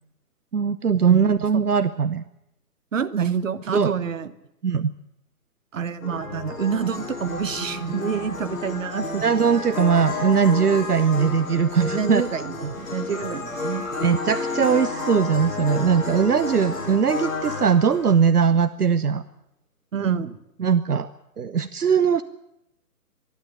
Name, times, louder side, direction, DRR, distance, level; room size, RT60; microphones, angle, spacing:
voice 1, 0.5-2.2 3.7-3.9 4.6-4.9 9.2-12.2 14.0-19.2 20.6-21.1 21.4-22.2, right 6 dB, 70° right, 13 dB, 1.0 m, -20 dB
voice 2, 1.0-1.6 2.9-4.3 5.7-9.2 11.7-13.8 19.9-20.4, right 7 dB, 55° right, 13 dB, 1.3 m, -27 dB
sound 1, 6.0-18.3, left 3 dB, 55° left, 8.0 m, -31 dB
24.0 x 12.0 x 10.0 m, 0.82 s
figure-of-eight pair, 135°, 47 cm